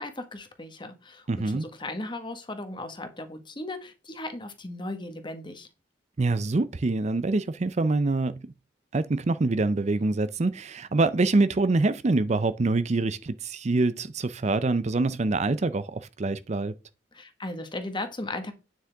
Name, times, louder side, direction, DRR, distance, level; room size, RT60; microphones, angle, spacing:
voice 1, 0.0-5.7 17.1-18.5, left 2 dB, 25° left, 1.5 m, -36 dB
voice 2, 1.3-1.7 6.2-8.4 8.9-16.7, right 3 dB, 40° right, 0.5 m, -25 dB
9.2 x 7.4 x 3.5 m
head